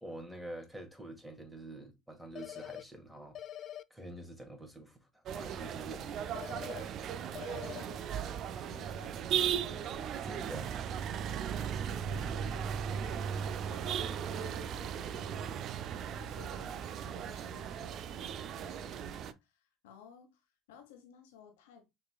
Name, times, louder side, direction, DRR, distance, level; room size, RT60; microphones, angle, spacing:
voice 1, 0.0-3.4 3.9-6.1 10.2-10.7, right 1 dB, 5° right, 1.8 m, -46 dB
sound 1, 2.4-2.8 3.4-3.8 6.4-6.8 7.4-7.8, left 11 dB, 50° left, 0.3 m, -44 dB
sound 2, 5.3-19.3, right 8 dB, 55° right, 0.4 m, -37 dB
voice 2, 7.7-10.3 11.9-21.9, left 6 dB, 80° left, 1.2 m, -57 dB
6.4 x 3.1 x 2.3 m
hypercardioid pair, 70°, 0 cm